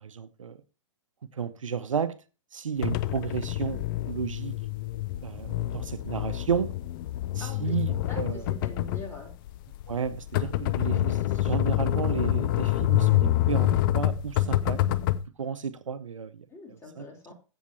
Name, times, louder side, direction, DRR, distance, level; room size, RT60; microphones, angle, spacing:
voice 1, 0.0-0.6 1.3-2.1 2.5-4.6 5.2-6.7 7.3-8.5 9.9-14.8 15.4-17.1, right 7 dB, 75° right, 0.8 m, -32 dB
sound 1, 2.8-15.2, left 14 dB, 40° left, 0.6 m, -27 dB
voice 2, 7.4-9.3 16.5-17.3, left 2 dB, 15° left, 3.6 m, -44 dB
15.5 x 7.3 x 2.9 m
figure-of-eight pair, 110°, 17 cm